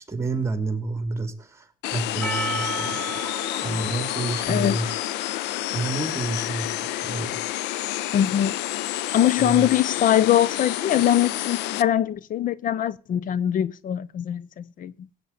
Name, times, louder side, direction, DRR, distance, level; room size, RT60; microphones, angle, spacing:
voice 1, 0.0-3.3 3.6-7.5 8.9-9.1 9.4-9.7, right 3 dB, 15° right, 2.8 m, -30 dB
sound 1, 1.8-11.8, left 15 dB, 90° left, 0.7 m, -29 dB
Percussion, 2.2-6.5, right 3 dB, 5° left, 2.3 m, -36 dB
voice 2, 4.5-4.8 8.1-8.5 9.1-14.9, left 11 dB, 55° left, 0.7 m, -22 dB
16.5 x 8.8 x 7.0 m
cardioid pair, 110°, 17 cm